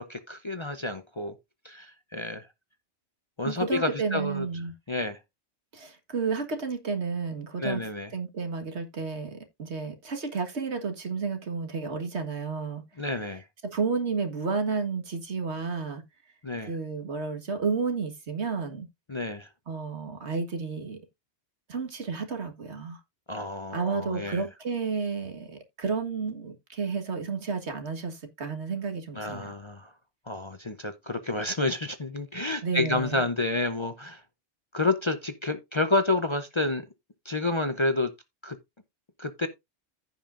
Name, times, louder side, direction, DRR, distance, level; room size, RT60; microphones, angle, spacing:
voice 1, 0.0-1.3 1.6-2.5 3.4-4.5 4.9-5.2 7.6-8.1 13.0-13.4 16.4-16.7 19.1-19.5 23.3-24.5 29.1-29.9 30.3-34.2 34.7-36.8 37.2-38.1 38.4-38.6 39.2-39.5, left 2 dB, 30° left, 0.7 m, -29 dB
voice 2, 3.4-4.7 5.7-7.8 8.1-12.8 13.6-16.0 16.6-18.9 19.7-21.0 21.7-23.0 23.7-29.5 32.6-33.2, right 5 dB, 70° right, 1.9 m, -31 dB
15.0 x 5.5 x 2.5 m
omnidirectional pair, 1.2 m